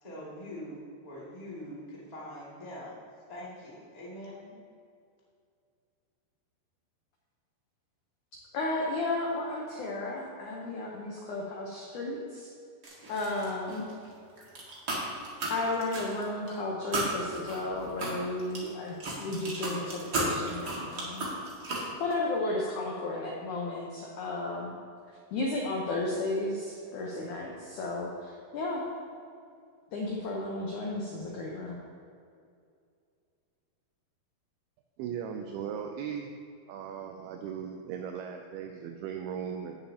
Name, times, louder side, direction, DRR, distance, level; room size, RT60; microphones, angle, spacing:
voice 1, 0.0-2.9 3.3-4.6, left 1 dB, 35° left, -7 dB, 0.6 m, -43 dB
voice 2, 8.5-12.5 13.1-13.9 15.5-21.3 22.0-24.7 25.3-28.9 29.9-31.8, left 2 dB, 85° left, -2 dB, 1.7 m, -33 dB
sound 1, 12.8-14.1 14.4-16.5 16.9-21.9, right 2 dB, 50° right, 1.1 m, -34 dB
voice 3, 35.0-36.3 36.7-39.8, right 8 dB, 85° right, 4 dB, 2.3 m, -37 dB
16.5 x 7.1 x 2.8 m, 2.4 s
omnidirectional pair, 4.9 m